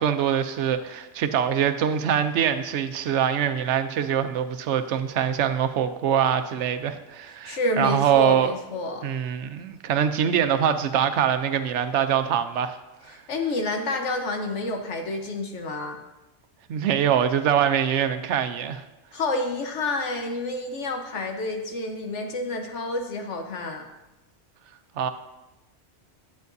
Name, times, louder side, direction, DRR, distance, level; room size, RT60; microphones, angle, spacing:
voice 1, 0.0-8.5 9.0-12.8 16.7-18.8 25.0-25.1, right 8 dB, 80° right, 10 dB, 0.9 m, -23 dB
voice 2, 7.2-9.1 13.1-16.0 19.1-23.8, left 2 dB, 85° left, 4 dB, 1.3 m, -29 dB
10.5 x 8.0 x 2.6 m, 1.0 s
omnidirectional pair, 1.2 m